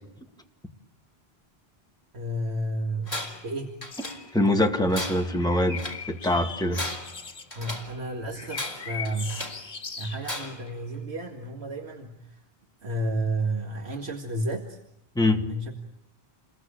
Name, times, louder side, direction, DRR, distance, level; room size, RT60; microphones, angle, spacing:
voice 1, 2.1-3.2 3.4-3.7 7.5-9.4 10.0-12.4 12.8-14.8 15.5-15.7, right 1 dB, 80° right, 3 dB, 2.3 m, -31 dB
Tools, 3.1-3.5 3.8-4.5 4.9-6.1 6.6-8.0 8.5-9.7 10.2-10.7, left 1 dB, 30° left, 3.6 m, -36 dB
sound 1, 3.9-4.2 5.4-7.5 8.3-10.3 10.7-10.8, left 6 dB, 70° left, 1.8 m, -39 dB
voice 2, 4.3-5.8 6.1-6.8 15.2-15.5, left 1 dB, 5° left, 4 dB, 2.0 m, -23 dB
29.0 x 21.5 x 8.8 m, 0.77 s
omnidirectional pair, 1.1 m